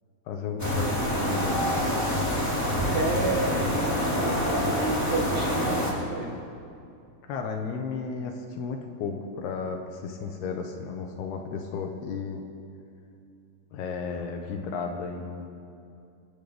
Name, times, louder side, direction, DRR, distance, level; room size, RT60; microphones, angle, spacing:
voice 1, 0.3-1.6 7.3-12.4 13.7-15.5, left 5 dB, 75° left, 3 dB, 2.8 m, -33 dB
sound 1, 0.6-5.9, equal, 10° left, 1.0 m, -26 dB
voice 2, 2.7-6.4, right 2 dB, 60° right, -3 dB, 2.0 m, -31 dB
27.5 x 11.0 x 3.5 m, 2.5 s
omnidirectional pair, 5.0 m